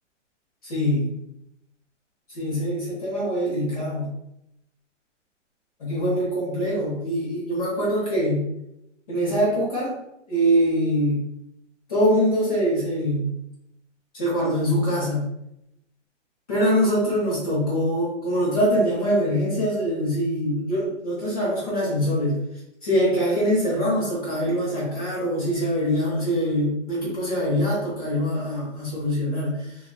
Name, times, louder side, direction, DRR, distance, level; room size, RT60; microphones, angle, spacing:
voice 1, 0.6-1.1 2.3-4.1 5.8-8.5 9.1-10.0 10.3-11.2 11.9-13.3 14.1-15.3 16.5-22.4 22.8-29.8, equal, 30° left, -6 dB, 0.8 m, -23 dB
2.4 x 2.3 x 2.2 m, 0.82 s
hypercardioid pair, 170°, 37 cm